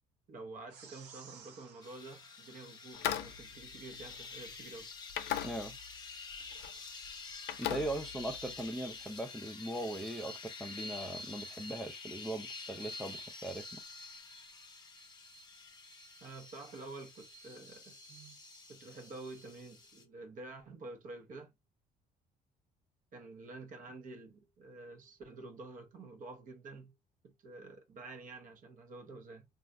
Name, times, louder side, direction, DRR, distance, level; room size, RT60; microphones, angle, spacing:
voice 1, 0.3-4.9 16.2-18.4 18.7-21.5 23.1-27.0 27.2-29.5, right 3 dB, 50° right, 0.9 m, -49 dB
sound 1, 0.7-3.4, right 6 dB, 90° right, 0.8 m, -57 dB
sound 2, 1.8-20.0, left 3 dB, 25° left, 0.8 m, -48 dB
sound 3, 2.9-4.6 5.1-6.0 6.3-6.7 7.0-8.6, left 12 dB, 85° left, 0.4 m, -39 dB
voice 2, 5.4-5.8 7.6-13.8, right 1 dB, ahead, 0.4 m, -40 dB
3.2 x 2.4 x 2.5 m
cardioid pair, 110°, 17 cm